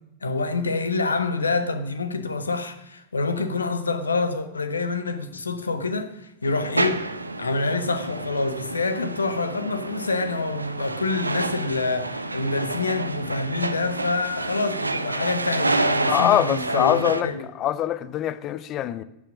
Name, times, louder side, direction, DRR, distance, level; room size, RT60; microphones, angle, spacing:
voice 1, 0.2-7.1 7.4-17.5, left 3 dB, 75° left, 1.3 m, -27 dB
sound 1, 6.4-17.2, right 2 dB, 80° right, 0.8 m, -29 dB
voice 2, 16.1-19.0, left 12 dB, 35° left, 0.8 m, -23 dB
14.5 x 9.0 x 6.3 m
figure-of-eight pair, 90°, 0 cm